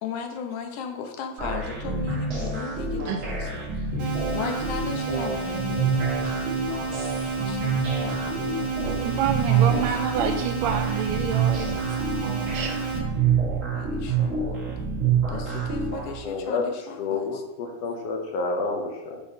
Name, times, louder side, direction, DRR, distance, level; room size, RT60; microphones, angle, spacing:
voice 1, 0.0-3.9 4.3-6.6 7.4-9.0 9.5-10.0 13.4-14.7 15.3-17.3, left 6 dB, 85° left, 5 dB, 2.3 m, -37 dB
sound 1, 1.4-16.1, right 5 dB, 35° right, 1.4 m, -27 dB
sound 2, 4.0-13.0, right 4 dB, 55° right, 1.8 m, -31 dB
voice 2, 8.8-12.8, right 7 dB, 80° right, 5 dB, 1.6 m, -29 dB
voice 3, 16.2-19.2, left 3 dB, 70° left, 2 dB, 1.7 m, -29 dB
7.1 x 4.2 x 5.1 m, 0.94 s
omnidirectional pair, 3.4 m